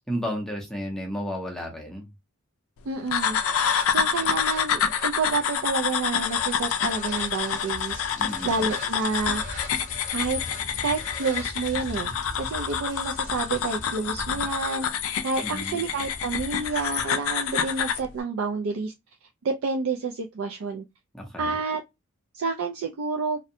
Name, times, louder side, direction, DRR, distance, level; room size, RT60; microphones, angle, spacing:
voice 1, 0.1-2.1 8.2-8.6 15.4-15.8 21.1-21.6, equal, 5° left, 0.5 m, -32 dB
voice 2, 2.9-3.4 3.9-8.1 8.4-9.4 10.1-10.4 10.8-14.9 15.2-18.9 19.4-20.8 21.4-21.8 22.3-23.4, right 4 dB, 70° right, 0.4 m, -29 dB
sound 1, 3.0-11.5, left 1 dB, 35° right, 0.9 m, -42 dB
sound 2, 3.1-18.1, left 8 dB, 70° left, 0.4 m, -28 dB
Rain, 6.2-18.0, left 2 dB, 35° left, 0.7 m, -42 dB
2.6 x 2.1 x 2.6 m
head